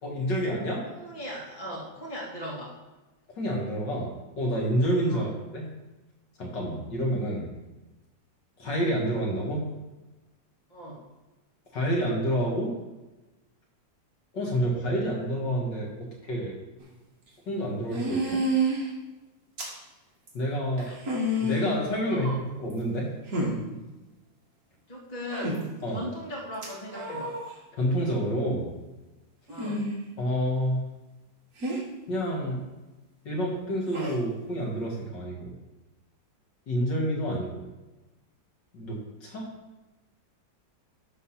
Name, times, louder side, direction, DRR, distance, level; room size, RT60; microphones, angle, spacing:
voice 1, 0.0-0.8 3.4-5.7 6.4-7.5 8.6-9.6 11.7-12.7 14.3-16.6 17.5-18.4 20.3-20.9 21.4-22.3 22.6-23.1 25.8-26.1 27.7-28.7 30.2-30.9 32.1-32.6 33.2-35.5 36.7-37.6 38.7-39.5, equal, 70° left, -2 dB, 2.5 m, -28 dB
voice 2, 0.8-2.8 5.1-5.3 10.7-11.0 20.8-21.0 22.0-22.5 24.9-27.4 29.5-29.9, equal, 20° left, -4 dB, 2.3 m, -38 dB
sound 1, 16.8-16.9 17.9-18.9 19.6-19.8 20.3-20.4 20.8-21.8 22.7-22.8 23.3-23.6 25.3-25.6 26.6-27.4 29.5-30.0 31.6-31.8 33.9-34.2, right 1 dB, 55° right, 2.3 m, -28 dB
12.0 x 4.0 x 5.7 m, 1.1 s
omnidirectional pair, 2.0 m